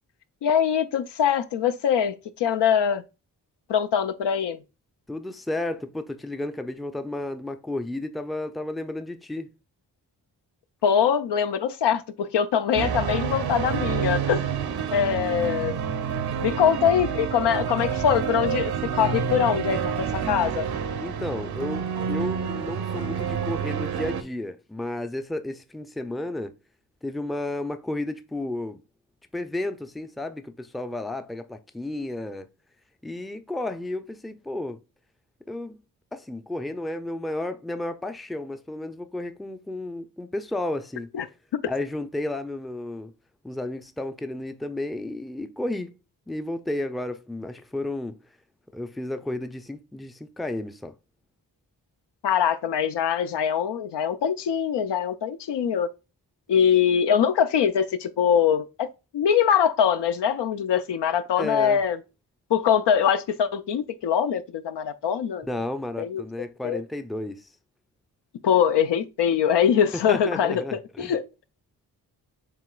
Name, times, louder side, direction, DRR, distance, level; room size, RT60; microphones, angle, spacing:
voice 1, 0.4-3.0 3.7-4.6 10.8-14.5 14.9-15.8 16.4-20.7 41.1-41.3 52.2-55.9 56.5-58.9 59.1-62.0 62.5-65.5 66.0-66.2 66.6-66.8 68.4-70.6 71.0-71.2, left 8 dB, 70° left, 0.6 m, -23 dB
voice 2, 5.1-9.5 21.0-26.5 27.0-28.8 29.3-32.5 33.0-34.8 35.5-35.8 36.1-41.1 41.7-43.1 43.4-45.9 46.3-48.2 48.7-50.9 61.4-61.8 65.4-67.5 69.9-71.1, left 1 dB, ahead, 0.5 m, -32 dB
sound 1, 12.7-24.2, right 7 dB, 60° right, 0.8 m, -28 dB
7.6 x 3.0 x 2.3 m
supercardioid pair, 40°, 43 cm